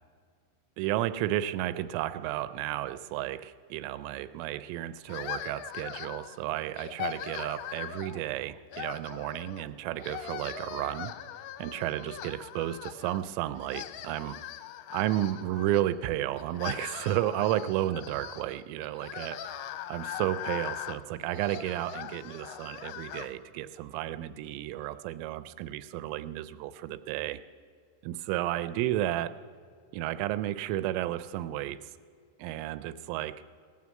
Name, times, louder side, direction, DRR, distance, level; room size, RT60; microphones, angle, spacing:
voice 1, 0.8-11.1 11.6-14.4 14.9-19.4 19.9-27.4 28.0-29.3 29.9-31.8 32.4-33.4, right 13 dB, 85° right, 13 dB, 3.0 m, -32 dB
sound 1, 5.1-6.4 6.8-8.2 8.7-9.7 10.0-13.2 13.6-15.8 16.4-23.3, left 11 dB, 85° left, 3.1 m, -41 dB
18.0 x 9.5 x 7.5 m, 2.1 s
omnidirectional pair, 5.9 m